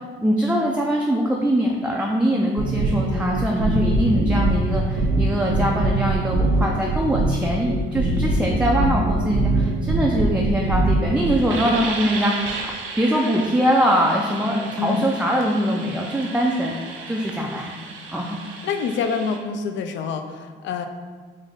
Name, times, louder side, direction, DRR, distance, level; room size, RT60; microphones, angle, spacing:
voice 1, 0.2-16.7 17.1-17.8 18.1-18.4, equal, 5° right, -2 dB, 0.3 m, -22 dB
sound 1, 2.6-19.4, right 2 dB, 85° right, 0.5 m, -25 dB
voice 2, 14.8-15.1 18.6-20.9, left 5 dB, 70° left, 7 dB, 0.4 m, -26 dB
3.4 x 2.6 x 3.7 m, 1.5 s
cardioid pair, 90°, 20 cm